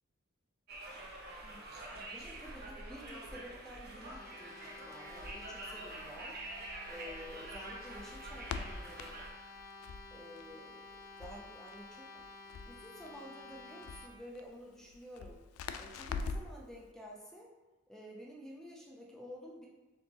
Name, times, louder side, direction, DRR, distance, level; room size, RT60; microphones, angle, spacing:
Conversation, 0.7-9.3, right 2 dB, 50° right, 0.8 m, -46 dB
voice 1, 1.9-9.1 10.1-10.8 11.2-12.2 12.7-15.4 15.8-17.5 17.9-19.7, equal, ahead, -2 dB, 0.4 m, -51 dB
sound 1, 4.0-14.1, left 3 dB, 45° left, 0.7 m, -52 dB
Crackle, 5.1-16.6, left 4 dB, 80° left, 0.3 m, -46 dB
4.4 x 3.9 x 2.8 m, 1.2 s
head